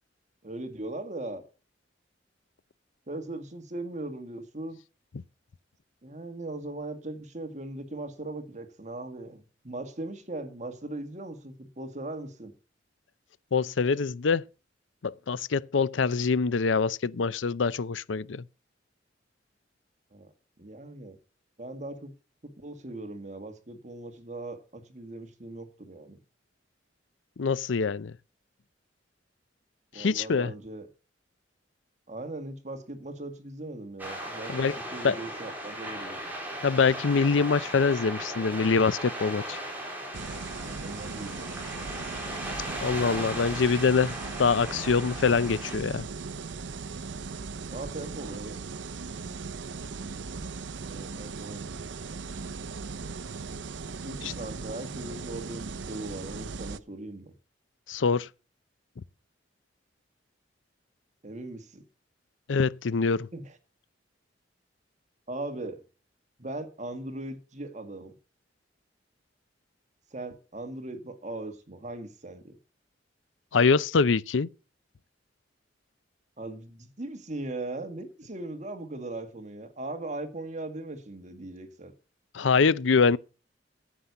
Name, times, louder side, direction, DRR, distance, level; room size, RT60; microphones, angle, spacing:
voice 1, 0.4-1.4 3.1-4.8 6.0-12.5 20.1-21.2 21.6-22.1 22.4-26.2 29.9-30.9 32.1-36.3 40.6-41.7 47.7-48.6 50.8-51.7 54.0-57.3 61.2-61.8 63.3-63.6 65.3-65.8 66.4-68.1 70.1-72.5 76.4-81.9, right 2 dB, 40° right, 1.8 m, -39 dB
voice 2, 13.5-14.5 15.0-18.4 27.4-28.2 29.9-30.5 34.5-34.8 35.0-35.1 36.6-39.6 42.8-46.1 54.2-54.3 57.9-58.3 62.5-63.3 73.5-74.5 82.3-83.2, left 5 dB, 80° left, 0.6 m, -24 dB
sound 1, 34.0-45.8, right 1 dB, 10° right, 4.2 m, -37 dB
sound 2, 40.1-56.8, right 4 dB, 70° right, 0.6 m, -38 dB
9.7 x 8.1 x 6.9 m
head